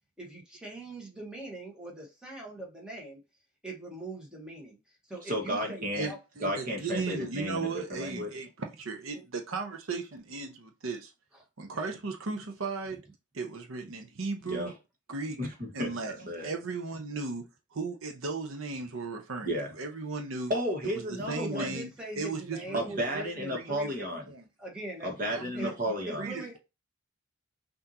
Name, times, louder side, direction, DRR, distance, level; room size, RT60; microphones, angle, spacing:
voice 1, 0.2-3.2 3.6-4.8 5.1-6.2 6.9-7.0 9.1-9.2 21.3-24.0 24.6-25.1 25.5-25.7 26.1-26.6, right 2 dB, 5° right, 1.3 m, -41 dB
voice 2, 5.2-6.1 6.4-8.3 14.4-14.7 15.4-16.5 19.4-19.7 20.5-21.8 22.7-24.3 25.0-26.3, equal, 40° right, 1.4 m, -33 dB
voice 3, 5.9-11.1 11.6-13.0 13.3-14.7 15.1-15.4 15.7-16.1 16.4-17.4 17.7-20.5 20.9-21.9 22.2-23.9 24.3-24.4 25.3-25.7 26.2-26.6, right 4 dB, 75° right, 0.8 m, -36 dB
5.8 x 2.7 x 2.8 m
head